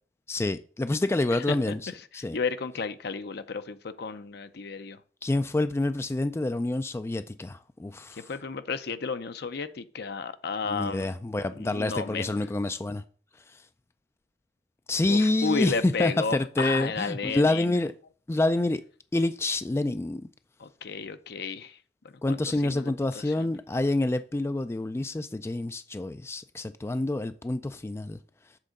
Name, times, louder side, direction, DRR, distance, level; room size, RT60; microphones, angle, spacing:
voice 1, 0.3-2.4 5.2-8.2 10.7-13.0 13.5-13.6 14.9-17.9 18.3-18.8 19.1-20.3 22.2-28.2, left 2 dB, 15° left, 0.3 m, -27 dB
voice 2, 2.1-5.0 8.3-11.1 11.5-12.3 15.1-17.8 20.6-21.8 22.3-23.5, left 4 dB, 65° left, 0.7 m, -33 dB
7.5 x 3.8 x 6.4 m
head